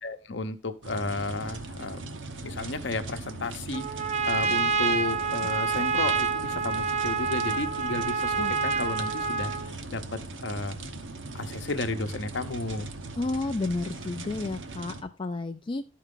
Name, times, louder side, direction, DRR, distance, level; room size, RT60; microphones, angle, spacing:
voice 1, 0.0-2.0 2.4-3.9 4.2-10.0 10.4-11.0 11.3-12.9, left 3 dB, 60° left, 8 dB, 0.8 m, -33 dB
sound 1, 0.8-15.0, right 2 dB, 70° right, 0.9 m, -39 dB
Trumpet, 3.7-9.7, right 5 dB, 35° right, 0.6 m, -27 dB
voice 2, 13.2-15.9, left 2 dB, 25° left, 5 dB, 0.4 m, -31 dB
12.0 x 4.7 x 3.7 m, 0.31 s
head